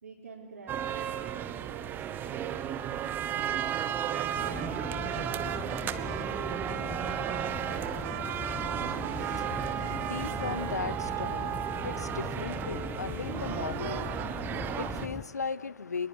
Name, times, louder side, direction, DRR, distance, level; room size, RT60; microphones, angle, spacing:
voice 1, 0.0-2.7 4.3-5.6, right 3 dB, 65° right, 4.6 m, -50 dB
sound 1, 0.7-15.1, right 10 dB, 20° right, 1.2 m, -34 dB
sound 2, 3.9-12.5 13.3-14.2, right 15 dB, 40° right, 1.1 m, -44 dB
sound 3, 4.3-15.2, left 7 dB, 15° left, 0.9 m, -40 dB
voice 2, 9.1-16.1, left 5 dB, 75° left, 0.9 m, -38 dB
25.0 x 21.0 x 9.8 m
figure-of-eight pair, 110°, 9 cm